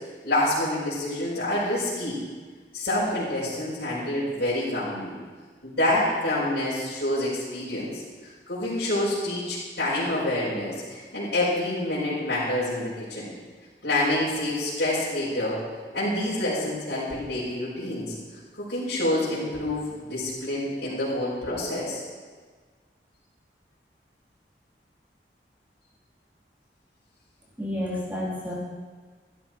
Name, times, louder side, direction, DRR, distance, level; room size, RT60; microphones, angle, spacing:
voice 1, 0.2-2.2 2.7-5.1 5.6-8.0 8.5-13.3 13.8-15.6 15.9-18.1 18.6-22.0, left 1 dB, 70° left, -11 dB, 5.0 m, -27 dB
voice 2, 27.6-28.5, left 1 dB, 10° right, -6 dB, 3.5 m, -30 dB
15.0 x 12.5 x 4.5 m, 1.4 s
head